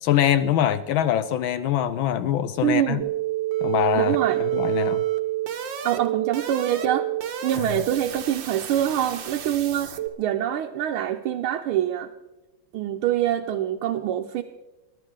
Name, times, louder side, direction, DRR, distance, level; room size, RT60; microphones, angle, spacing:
voice 1, 0.0-3.0 3.6-5.0, left 11 dB, 75° left, 13 dB, 1.3 m, -23 dB
voice 2, 2.6-3.1 4.0-4.4 5.8-7.1 7.4-12.1 12.7-14.4, right 11 dB, 90° right, 3 dB, 1.6 m, -25 dB
sound 1, 3.0-10.1, right 13 dB, 65° right, 1.7 m, -28 dB
21.5 x 12.0 x 3.8 m, 1.0 s
omnidirectional pair, 2.3 m